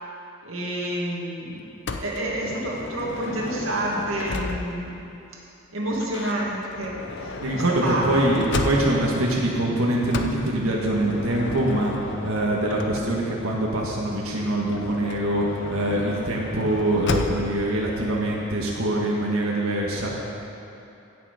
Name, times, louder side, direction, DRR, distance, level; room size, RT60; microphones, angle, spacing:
voice 1, 0.4-1.7 2.0-5.0 5.7-8.3, right 1 dB, 75° right, -3 dB, 2.1 m, -29 dB
Motor vehicle (road) / Sliding door, 1.9-4.9 5.9-9.2 10.1-13.4 14.6-17.6, left 3 dB, 60° left, 0.7 m, -33 dB
voice 2, 7.4-11.9 12.2-20.1, right 1 dB, 90° right, -3 dB, 1.6 m, -24 dB
16.0 x 6.9 x 5.0 m, 2.8 s
head